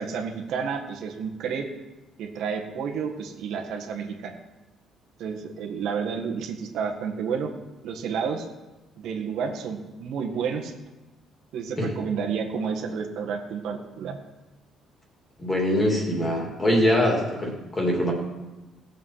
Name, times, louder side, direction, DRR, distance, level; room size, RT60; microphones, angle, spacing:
voice 1, 0.0-1.7 2.2-4.4 5.2-7.5 7.8-8.5 9.0-10.7 11.5-14.2, right 6 dB, 65° right, 3 dB, 1.7 m, -30 dB
voice 2, 15.4-18.1, left 1 dB, 15° left, 0 dB, 2.6 m, -23 dB
18.0 x 7.4 x 5.8 m, 1.1 s
cardioid pair, 175°, 0 cm